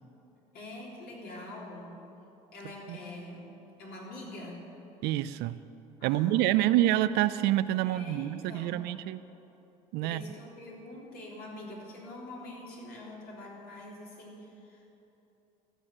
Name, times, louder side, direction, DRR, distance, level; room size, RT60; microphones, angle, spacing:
voice 1, 0.5-2.0 2.5-4.6 6.0-6.9 7.8-8.9 10.0-15.0, left 1 dB, 60° left, -3 dB, 3.5 m, -45 dB
voice 2, 5.0-5.6 6.0-9.2 9.9-10.2, right 14 dB, 70° right, 14 dB, 0.5 m, -27 dB
14.5 x 6.3 x 8.8 m, 3.0 s
supercardioid pair, 75°, 18 cm